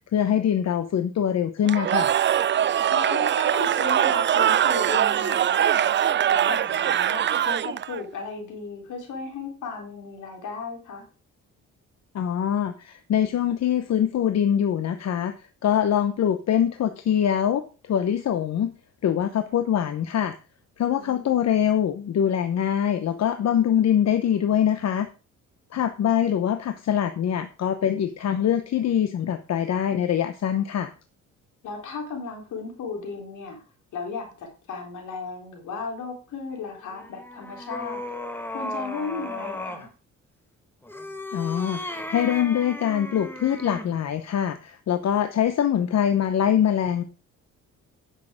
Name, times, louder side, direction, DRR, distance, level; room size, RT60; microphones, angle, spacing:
voice 1, 0.1-2.1 12.1-15.3 15.6-18.7 19.0-20.3 20.8-25.1 25.7-30.9 41.3-47.0, left 9 dB, 60° left, 9 dB, 0.9 m, -23 dB
Cheering / Crowd, 1.7-8.0, right 10 dB, 40° right, 0.4 m, -22 dB
voice 2, 2.9-5.9 6.3-11.1 21.0-21.5 31.6-33.6 33.9-38.0 38.5-39.9, left 4 dB, 75° left, 2 dB, 3.9 m, -35 dB
sound 1, 36.9-39.9 40.8-44.0, left 1 dB, 5° left, 1.5 m, -35 dB
9.9 x 6.7 x 5.0 m, 0.35 s
cardioid pair, 90°, 30 cm